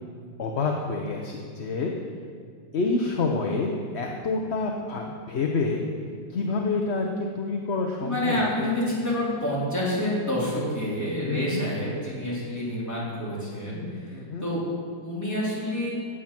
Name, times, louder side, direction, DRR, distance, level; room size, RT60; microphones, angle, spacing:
voice 1, 0.4-1.9 2.7-5.8 6.3-8.7 11.2-11.7 14.1-14.4, left 3 dB, 45° left, 1 dB, 0.9 m, -28 dB
voice 2, 8.0-14.7 15.0-15.9, left 1 dB, 10° left, -7 dB, 3.7 m, -28 dB
16.0 x 7.9 x 6.0 m, 2.1 s
omnidirectional pair, 1.9 m